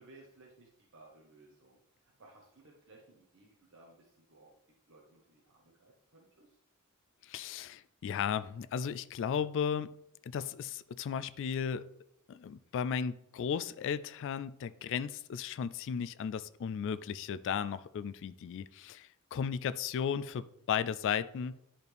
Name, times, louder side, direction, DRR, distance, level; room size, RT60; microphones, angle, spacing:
voice 1, 0.0-4.6 4.9-6.6, right 2 dB, 60° right, -2 dB, 1.2 m, -59 dB
voice 2, 7.2-9.9 10.2-11.9 12.3-21.6, left 7 dB, 55° left, 14 dB, 0.3 m, -35 dB
10.5 x 4.3 x 3.4 m, 0.79 s
head